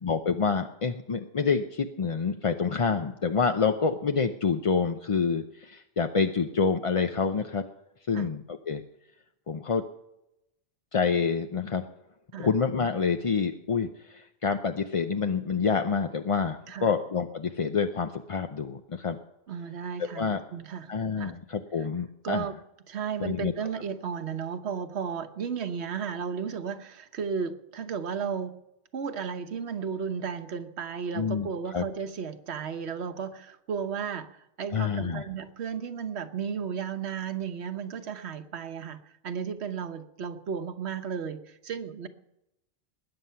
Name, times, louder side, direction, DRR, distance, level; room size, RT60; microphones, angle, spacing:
voice 1, 0.0-7.6 8.1-8.8 9.5-9.8 10.9-11.9 12.4-19.2 20.2-20.4 20.9-22.5 23.2-23.5 31.1-31.8 34.7-35.2, left 5 dB, 40° left, 6 dB, 0.5 m, -27 dB
voice 2, 19.5-20.3 20.5-20.9 21.2-21.3 21.8-21.9 22.2-22.5 22.9-28.6 28.9-42.1, right 6 dB, 65° right, 8 dB, 1.3 m, -34 dB
21.0 x 9.7 x 5.7 m, 0.88 s
omnidirectional pair, 1.2 m